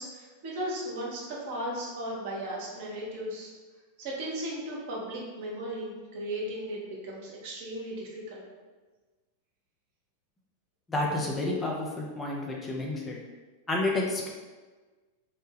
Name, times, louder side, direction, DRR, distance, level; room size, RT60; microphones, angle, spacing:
voice 1, 0.0-3.5 4.0-8.4, right 1 dB, 50° right, -3 dB, 0.8 m, -36 dB
voice 2, 10.9-13.2 13.7-14.3, left 2 dB, 15° left, -2 dB, 0.4 m, -30 dB
2.6 x 2.1 x 3.2 m, 1.3 s
figure-of-eight pair, 90°, 0 cm